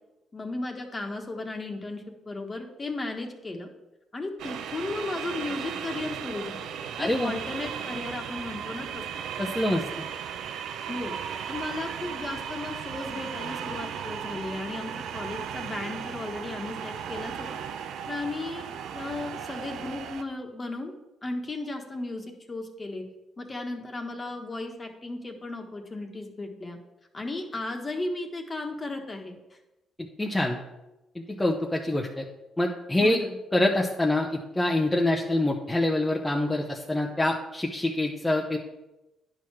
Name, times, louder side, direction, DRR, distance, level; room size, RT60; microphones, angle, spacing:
voice 1, 0.3-3.7 4.1-6.7 7.0-9.0 10.9-11.2 11.5-20.9 21.2-23.0 23.4-26.8 27.1-29.4 33.0-33.4, left 2 dB, 30° left, 3 dB, 1.5 m, -35 dB
sound 1, 4.4-20.2, right 8 dB, 80° right, 0.6 m, -36 dB
voice 2, 7.0-7.3 9.4-9.8 30.2-30.6 31.3-32.3 32.6-33.2 33.5-38.6, left 1 dB, 10° left, -1 dB, 0.9 m, -25 dB
10.0 x 4.8 x 6.0 m, 0.99 s
cardioid pair, 90°, 0 cm